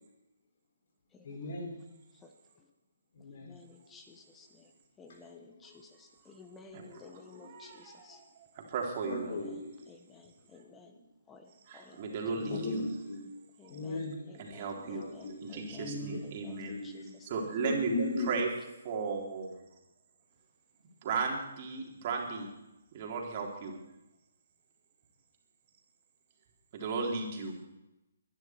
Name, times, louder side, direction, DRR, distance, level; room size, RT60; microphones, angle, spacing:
voice 1, 1.2-1.7 3.1-3.5 5.3-5.6 6.8-7.8 9.1-9.8 10.9-11.0 12.2-13.3 13.7-14.3 14.7-15.4 15.7-17.1 17.6-18.4, left 2 dB, 55° left, -1 dB, 6.2 m, -38 dB
voice 2, 3.4-4.7 5.0-8.2 9.3-9.5 9.9-10.9 11.3-12.0 12.5-12.6 13.6-14.0 14.3-15.9 16.2-17.3, left 4 dB, 15° left, 5 dB, 1.4 m, -54 dB
voice 3, 6.7-8.1 8.6-9.4 11.7-12.8 14.4-15.0 15.4-16.8 17.2-17.9 18.3-18.5 18.8-19.6 21.0-22.5 22.9-23.8 26.7-27.5, right 4 dB, 40° right, 0 dB, 3.9 m, -35 dB
23.0 x 11.0 x 4.6 m, 0.96 s
figure-of-eight pair, 135°, 0 cm